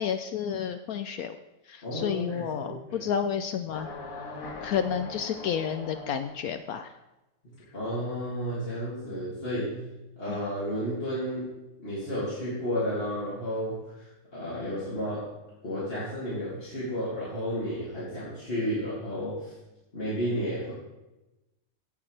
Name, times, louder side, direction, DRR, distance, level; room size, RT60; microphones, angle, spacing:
voice 1, 0.0-1.4 1.7-3.9 4.6-6.9 10.3-10.4, left 8 dB, 75° left, 9 dB, 0.8 m, -31 dB
voice 2, 1.8-3.0 7.7-9.8 10.2-15.3 15.6-19.5 19.9-20.7, equal, 35° left, -9 dB, 2.8 m, -32 dB
sound 1, 3.7-6.6, left 3 dB, 50° left, 1.6 m, -41 dB
16.5 x 7.0 x 3.3 m, 1.0 s
omnidirectional pair, 1.9 m